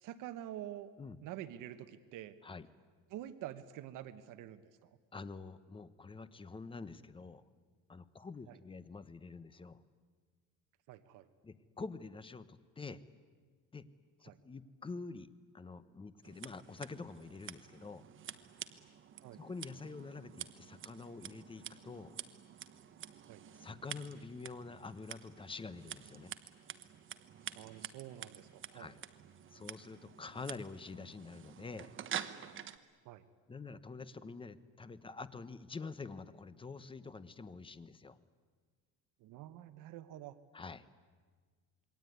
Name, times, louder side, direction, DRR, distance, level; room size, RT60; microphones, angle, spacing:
voice 1, 0.0-0.9 1.2-2.4 3.1-4.9 8.5-8.6 10.9-11.3 14.3-14.4 19.2-19.4 23.3-23.4 27.6-28.9 33.0-33.2 39.2-40.3, right 12 dB, 70° right, 11 dB, 1.2 m, -47 dB
voice 2, 5.1-7.4 7.9-9.8 11.4-13.0 13.7-13.8 14.2-15.3 15.5-18.0 19.4-22.2 23.6-26.3 28.7-29.0 29.5-31.9 33.5-38.2 40.5-40.8, left 4 dB, 15° left, 14 dB, 0.9 m, -47 dB
Scissors, 16.2-32.8, right 9 dB, 35° right, 1.2 m, -48 dB
27.5 x 22.0 x 9.5 m, 1.5 s
cardioid pair, 150°, 33 cm